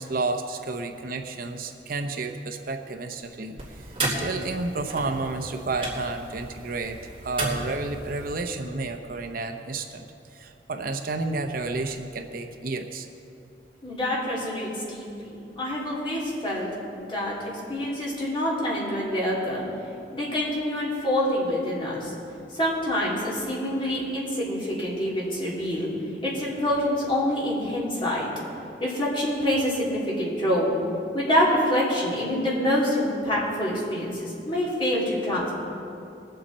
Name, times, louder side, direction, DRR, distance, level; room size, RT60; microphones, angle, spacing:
voice 1, 0.0-10.0 10.3-13.1, right 3 dB, 55° right, 6 dB, 0.7 m, -31 dB
sound 1, 3.6-8.4, right 2 dB, 30° right, 2.7 m, -33 dB
voice 2, 13.8-19.6 20.1-22.1 22.5-25.9 26.2-28.3 28.8-30.7 31.1-35.5, equal, 30° left, -6 dB, 3.2 m, -26 dB
21.0 x 7.9 x 4.3 m, 2.7 s
head